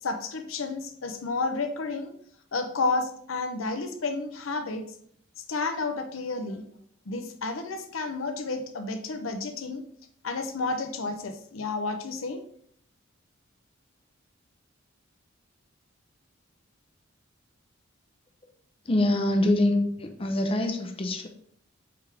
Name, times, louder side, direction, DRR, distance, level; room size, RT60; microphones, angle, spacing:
voice 1, 0.0-2.1 2.5-4.9 5.5-6.7 7.1-9.8 10.2-12.4, left 3 dB, 85° left, 7 dB, 0.8 m, -31 dB
voice 2, 18.9-21.3, left 1 dB, 25° left, 4 dB, 0.6 m, -25 dB
7.8 x 3.6 x 3.4 m, 0.63 s
head